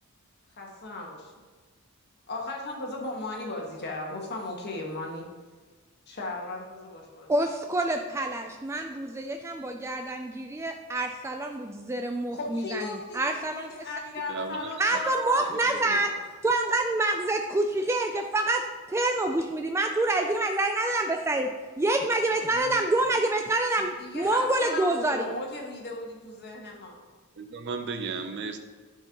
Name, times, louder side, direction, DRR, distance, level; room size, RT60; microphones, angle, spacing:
voice 1, 0.5-1.5 2.3-5.3 6.1-7.3 12.3-16.2 23.8-27.1, left 2 dB, 50° left, -1 dB, 1.4 m, -37 dB
voice 2, 7.3-12.8 13.1-13.7 14.8-16.1 16.4-18.6 18.9-21.5 21.8-25.2, right 2 dB, 10° right, 4 dB, 0.3 m, -27 dB
voice 3, 14.3-14.7 15.9-16.0 22.5-22.8 27.4-28.6, right 4 dB, 50° right, 7 dB, 0.6 m, -35 dB
11.5 x 4.5 x 3.0 m, 1.4 s
head